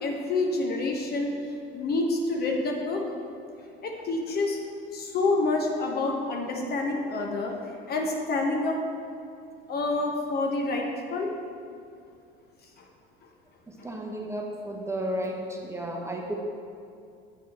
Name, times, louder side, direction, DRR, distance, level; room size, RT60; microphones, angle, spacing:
voice 1, 0.0-1.3 1.7-3.0 3.6-4.6 4.9-7.6 7.9-8.8 9.7-11.3 12.8-12.9 13.8-13.9, left 2 dB, 35° left, 1 dB, 0.9 m, -28 dB
voice 2, 13.7-16.3, right 1 dB, 10° right, -1 dB, 1.0 m, -33 dB
7.8 x 5.4 x 4.3 m, 2.4 s
figure-of-eight pair, 65°, 30 cm